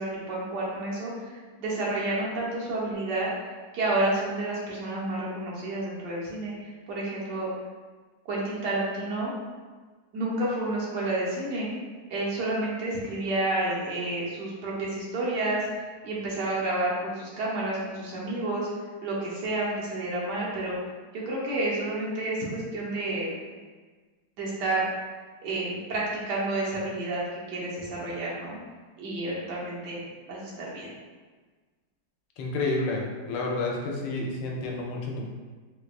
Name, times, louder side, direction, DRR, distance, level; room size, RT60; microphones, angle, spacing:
voice 1, 0.0-1.3 1.6-3.3 3.7-6.5 6.9-7.5 8.3-9.3 10.1-11.7 12.1-15.6 16.0-18.7 19.0-20.7 21.1-23.3 24.4-24.9 25.4-28.6 29.0-30.0 30.3-30.9, right 2 dB, 70° right, -5 dB, 1.3 m, -30 dB
voice 2, 32.4-35.3, left 2 dB, 85° left, -1 dB, 1.3 m, -30 dB
4.6 x 2.2 x 2.3 m, 1.4 s
omnidirectional pair, 1.9 m